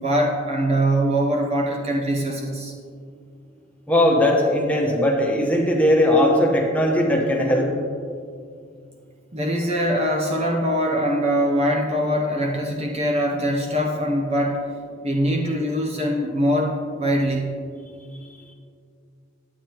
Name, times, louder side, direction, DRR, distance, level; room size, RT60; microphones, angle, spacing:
voice 1, 0.0-2.7 9.3-14.6 15.0-17.5, equal, 30° right, 0 dB, 0.7 m, -22 dB
voice 2, 3.9-7.7, left 1 dB, 5° left, -1 dB, 1.1 m, -19 dB
10.5 x 9.0 x 3.0 m, 2.3 s
head